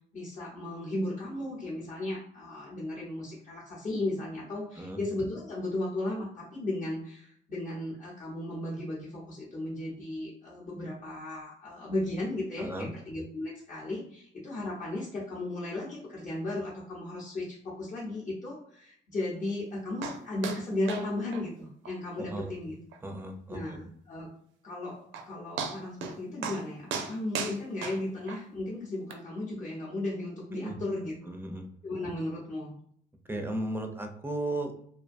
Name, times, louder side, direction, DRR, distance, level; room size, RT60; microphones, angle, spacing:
voice 1, 0.1-22.8 23.5-24.3 24.6-31.1 31.8-32.7, left 1 dB, 40° left, -7 dB, 0.8 m, -35 dB
voice 2, 12.6-12.9 22.2-22.6 23.0-23.8 30.5-30.8 31.3-31.6 33.3-34.9, right 1 dB, 10° right, 5 dB, 0.4 m, -35 dB
sound 1, 20.0-20.2 20.4-20.6 20.9-21.1 21.3-21.4 21.9-22.0 22.4-22.5 22.9-23.0 24.7-24.8 25.1-25.3 25.6-26.2 26.4-26.6 26.9-28.4 29.1-29.2, right 6 dB, 80° right, 0.4 m, -35 dB
2.5 x 2.2 x 2.5 m, 0.64 s
cardioid pair, 90°, 20 cm